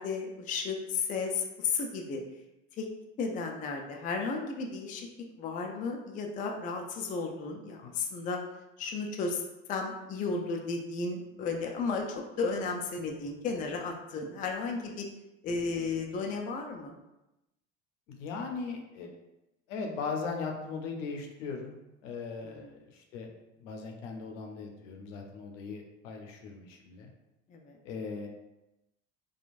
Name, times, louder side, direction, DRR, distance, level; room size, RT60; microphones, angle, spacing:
voice 1, 0.0-2.2 2.8-2.9 3.2-5.1 5.4-8.4 8.8-9.4 9.7-15.1 15.4-16.9 22.4-22.7 27.5-27.8, left 4 dB, 25° left, 2 dB, 0.3 m, -34 dB
voice 2, 18.1-19.1 19.7-21.8 22.0-23.3 23.6-27.1 27.8-28.3, left 4 dB, 75° left, 2 dB, 0.6 m, -38 dB
2.9 x 2.3 x 2.4 m, 0.96 s
hypercardioid pair, 75°, 38 cm